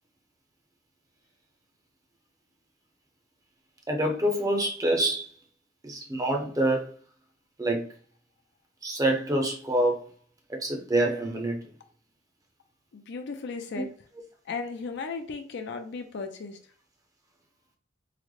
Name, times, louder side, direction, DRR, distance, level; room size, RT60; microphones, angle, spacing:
voice 1, 3.9-5.3 5.8-6.9 7.6-7.9 8.8-10.1 10.5-11.6 13.7-13.8, right 1 dB, 20° right, 0.6 m, -26 dB
voice 2, 12.9-13.9 14.5-16.6, left 4 dB, 60° left, 0.5 m, -35 dB
3.8 x 2.1 x 3.1 m
head